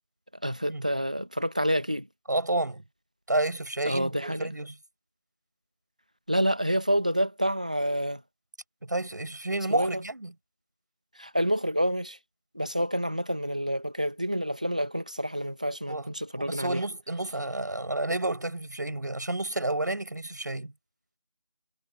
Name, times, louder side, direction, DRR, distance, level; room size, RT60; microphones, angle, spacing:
voice 1, 0.4-2.1 3.9-4.5 6.3-8.2 9.7-10.0 11.2-12.2 12.5-16.8, equal, 10° right, 1.8 m, -28 dB
voice 2, 2.3-2.8 3.3-4.8 8.8-10.3 15.9-16.1 16.4-20.7, right 2 dB, 30° right, 5.5 m, -30 dB
figure-of-eight pair, 180°, 20 cm